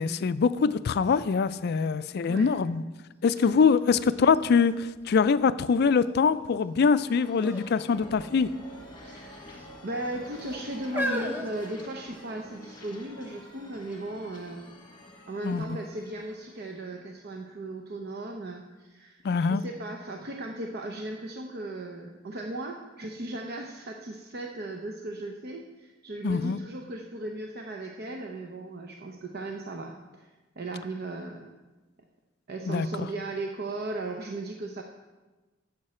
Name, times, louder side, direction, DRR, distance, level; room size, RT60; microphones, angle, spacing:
voice 1, 0.0-2.8 3.2-8.5 15.4-15.8 19.2-19.6 26.2-26.6 32.7-32.9, left 5 dB, 55° left, 15 dB, 0.4 m, -24 dB
sound 1, 3.4-3.5 3.9-5.4 6.0-6.5 7.4-7.7 8.0-8.2 9.0-9.7 10.4-12.4 13.2-13.3, equal, 10° right, 1.0 m, -36 dB
sound 2, 6.3-17.8, left 1 dB, 25° left, 1.5 m, -48 dB
voice 2, 9.0-9.6 9.8-14.7 15.3-19.2 19.5-30.3 30.6-31.6 32.5-34.8, right 2 dB, 55° right, 2 dB, 0.7 m, -37 dB
12.5 x 7.5 x 4.3 m, 1.2 s
head